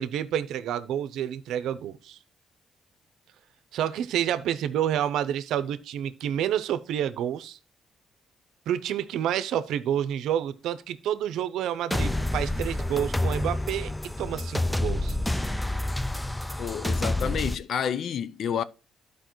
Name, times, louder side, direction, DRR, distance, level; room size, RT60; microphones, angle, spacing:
voice 1, 0.0-2.2 3.7-7.6 8.7-13.9 14.2-15.2, right 10 dB, 85° right, 0.6 m, -29 dB
sound 1, 11.9-17.5, left 1 dB, 5° left, 0.3 m, -28 dB
voice 2, 16.6-18.6, left 8 dB, 65° left, 0.5 m, -29 dB
12.5 x 4.9 x 3.0 m
cardioid pair, 90°, 0 cm